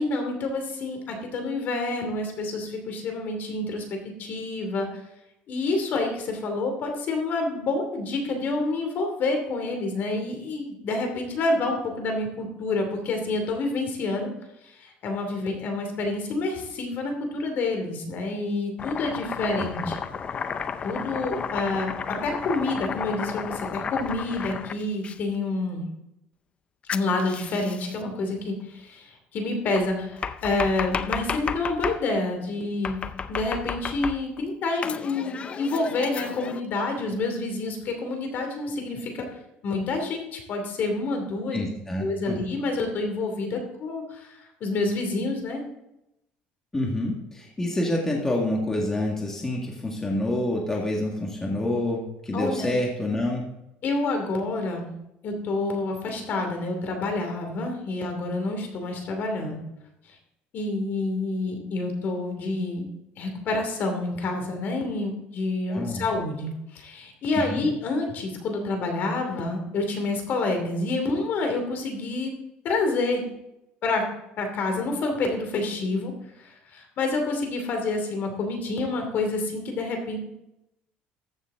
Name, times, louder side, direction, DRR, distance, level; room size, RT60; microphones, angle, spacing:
voice 1, 0.0-4.9 5.5-14.3 14.6-20.0 20.8-25.9 26.9-33.0 33.3-39.3 39.6-41.6 42.0-45.6 52.3-52.7 53.8-54.9 55.2-59.6 60.5-62.9 63.2-72.3 72.6-73.2 73.8-74.0 74.4-76.1 76.4-80.2, left 2 dB, 50° left, 4 dB, 2.6 m, -28 dB
Domestic sounds home sounds, 18.8-25.2 26.9-28.0 29.8-32.0 32.8-34.4 34.8-36.6, left 6 dB, 30° left, 0.5 m, -33 dB
voice 2, 41.5-42.4 46.7-53.4 65.7-66.0 67.5-67.7, left 1 dB, 10° left, -1 dB, 1.8 m, -27 dB
14.0 x 7.3 x 3.7 m, 0.85 s
cardioid pair, 140°, 4 cm